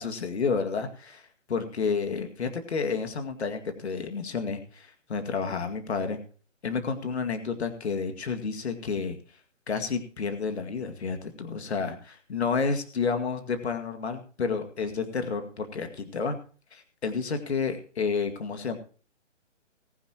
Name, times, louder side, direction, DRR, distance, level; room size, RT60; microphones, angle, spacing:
voice 1, 0.0-6.2 6.6-9.2 9.7-16.4 16.7-18.8, left 5 dB, 60° left, 6 dB, 2.2 m, -30 dB
20.0 x 9.9 x 2.9 m, 0.39 s
hypercardioid pair, 165°, 37 cm